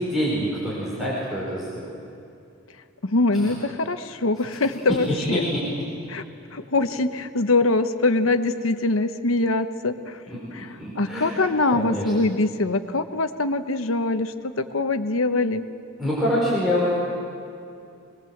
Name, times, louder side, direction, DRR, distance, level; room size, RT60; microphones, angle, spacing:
voice 1, 0.0-1.9 3.3-3.5 5.1-5.6 10.3-11.4 11.7-12.3 16.0-17.0, equal, ahead, -8 dB, 5.2 m, -26 dB
voice 2, 3.0-5.4 6.1-6.2 6.5-10.2 10.5-10.7 11.0-15.6, left 2 dB, 85° left, 9 dB, 1.1 m, -23 dB
25.0 x 20.5 x 7.9 m, 2.6 s
head